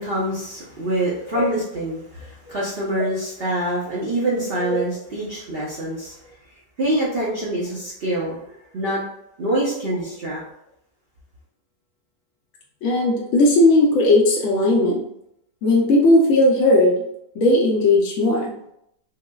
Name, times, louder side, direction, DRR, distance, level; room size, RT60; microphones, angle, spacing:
voice 1, 0.0-6.2 6.8-8.4 8.7-9.0 9.4-10.4, right 1 dB, 70° right, -6 dB, 0.5 m, -25 dB
voice 2, 12.8-15.0 15.6-17.0 17.3-18.5, left 2 dB, 70° left, -3 dB, 0.7 m, -17 dB
3.8 x 2.0 x 2.2 m, 0.76 s
omnidirectional pair, 1.8 m